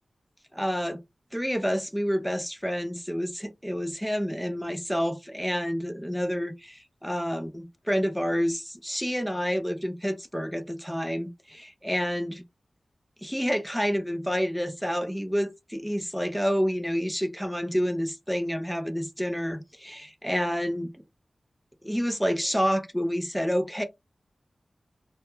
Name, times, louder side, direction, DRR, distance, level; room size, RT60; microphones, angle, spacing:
voice 1, 0.5-1.0 1.3-12.4 13.2-20.9 21.8-23.8, equal, ahead, 0.3 m, -29 dB
2.1 x 2.1 x 2.9 m
wide cardioid pair, 95°, 0 cm